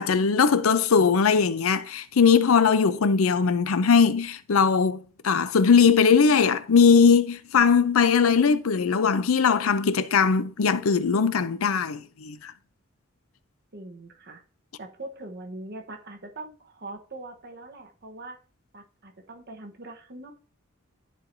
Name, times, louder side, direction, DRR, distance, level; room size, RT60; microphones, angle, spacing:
voice 1, 0.0-12.5, left 5 dB, 80° left, 0.5 m, -20 dB
voice 2, 13.7-14.4 14.8-18.4 18.7-20.3, right 2 dB, 50° right, 1.1 m, -42 dB
13.0 x 4.5 x 2.6 m
head